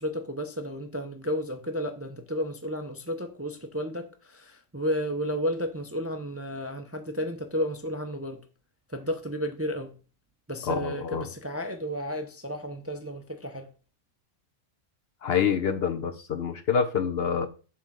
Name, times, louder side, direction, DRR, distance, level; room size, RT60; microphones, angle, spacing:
voice 1, 0.0-8.4 8.9-9.9 10.5-13.7, equal, 15° right, 0.5 m, -32 dB
voice 2, 10.7-11.3 15.2-17.5, left 7 dB, 60° left, 0.8 m, -26 dB
7.3 x 3.8 x 6.4 m
omnidirectional pair, 1.3 m